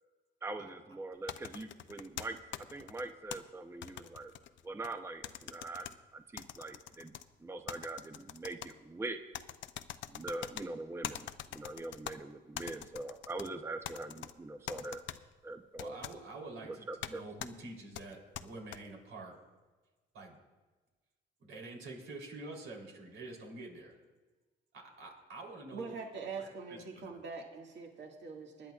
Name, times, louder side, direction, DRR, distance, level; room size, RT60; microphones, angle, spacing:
voice 1, 0.4-2.4 2.7-4.3 4.6-5.9 6.1-7.1 7.4-9.2 10.1-15.0 15.4-16.0 16.6-17.2, right 2 dB, 10° right, 7 dB, 0.6 m, -42 dB
sound 1, 1.3-3.4 3.8-4.9 5.2-5.9 6.4-7.2 7.7-8.7 9.3-10.6 11.0-12.1 12.5-13.5 13.8-14.3 14.7-15.2 15.8-16.1 17.0-17.1 17.4-17.5 17.9-18.8, left 11 dB, 70° left, 0.6 m, -43 dB
voice 2, 15.8-19.4 20.1-20.4 21.4-23.9 24.7-25.9 26.3-27.2, right 2 dB, 85° right, -1 dB, 3.4 m, -47 dB
voice 3, 25.7-28.7, right 4 dB, 65° right, 1 dB, 1.9 m, -43 dB
24.5 x 10.5 x 2.4 m, 1.2 s
cardioid pair, 90°, 20 cm